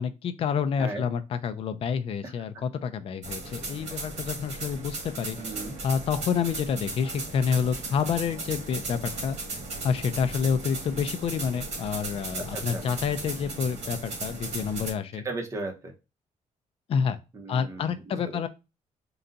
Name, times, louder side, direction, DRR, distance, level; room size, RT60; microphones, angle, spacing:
voice 1, 0.0-5.4 5.8-9.4 9.8-15.2 16.9-17.2 17.5-18.5, left 6 dB, 45° left, 0.5 m, -28 dB
sound 1, 3.2-14.9, right 3 dB, 55° right, 1.5 m, -36 dB
voice 2, 5.4-5.8 12.5-12.8 15.2-15.9 17.3-18.4, right 2 dB, 20° right, 0.8 m, -36 dB
3.9 x 2.3 x 3.9 m
cardioid pair, 175°, 14 cm